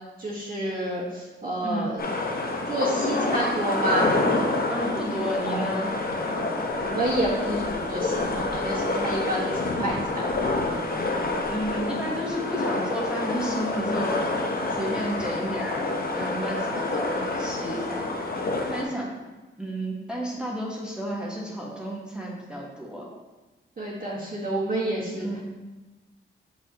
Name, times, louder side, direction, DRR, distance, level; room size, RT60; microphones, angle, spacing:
voice 1, 0.2-2.0 2.7-4.2 6.8-10.0 23.8-25.3, right 1 dB, 45° right, -8 dB, 1.4 m, -29 dB
voice 2, 1.6-1.9 4.5-5.9 11.4-14.2 14.7-18.1 18.6-19.1 19.6-23.1 25.1-25.4, equal, 5° right, -4 dB, 1.1 m, -31 dB
sound 1, 2.0-18.8, left 2 dB, 45° left, 0.8 m, -28 dB
6.3 x 6.0 x 2.8 m, 1.2 s
wide cardioid pair, 95°, 21 cm